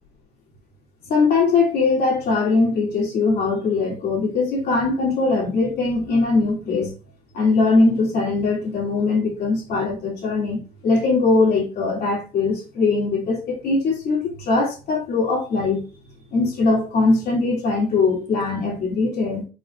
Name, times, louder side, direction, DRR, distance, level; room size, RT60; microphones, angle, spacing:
voice 1, 1.1-6.9 7.3-15.8 16.3-19.5, left 3 dB, 65° left, -3 dB, 2.3 m, -21 dB
5.1 x 3.8 x 2.3 m, 0.34 s
cardioid pair, 110°, 17 cm